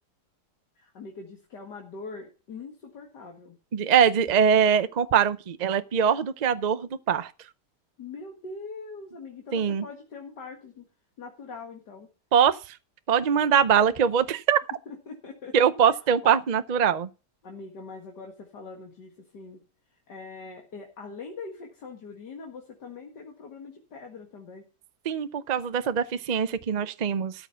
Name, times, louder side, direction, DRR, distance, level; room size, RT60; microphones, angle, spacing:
voice 1, 0.8-3.6 8.0-10.8 11.2-12.1 14.9-15.5 15.8-16.3 17.4-19.6 20.1-24.7, left 4 dB, 85° left, 2.5 m, -42 dB
voice 2, 3.7-7.3 9.5-9.8 12.3-12.8 13.1-14.6 15.5-17.1 25.1-27.3, right 7 dB, 65° right, 0.4 m, -22 dB
13.5 x 6.9 x 5.8 m
omnidirectional pair, 1.8 m